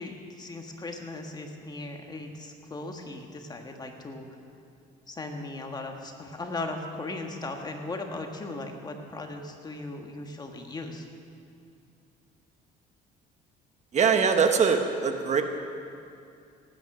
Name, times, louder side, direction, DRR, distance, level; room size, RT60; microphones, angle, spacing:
voice 1, 0.0-4.3 5.1-11.1, left 2 dB, 25° left, 3 dB, 1.5 m, -38 dB
voice 2, 13.9-15.4, right 6 dB, 45° right, 6 dB, 1.0 m, -22 dB
18.0 x 9.3 x 6.1 m, 2.5 s
cardioid pair, 110°, 17 cm